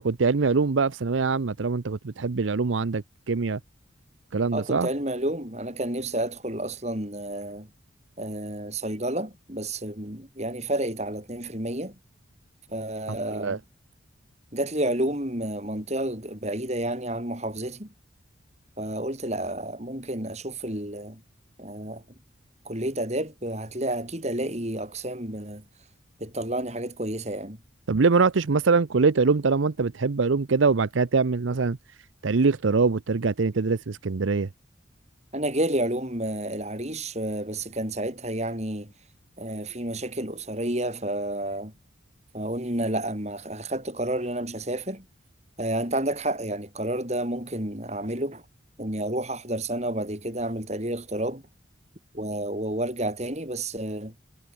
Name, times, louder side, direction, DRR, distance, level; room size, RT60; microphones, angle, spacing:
voice 1, 0.0-3.6 4.3-4.9 13.1-13.6 27.9-31.8 32.2-34.5, right 4 dB, 75° right, 0.6 m, -23 dB
voice 2, 4.5-7.7 8.2-12.0 12.7-13.6 14.5-17.9 18.8-21.2 21.6-22.0 22.7-25.6 26.2-27.6 35.3-38.9 39.4-41.7 42.3-45.0 45.6-48.4 48.8-51.4 52.1-54.1, right 1 dB, 35° right, 5.3 m, -30 dB
head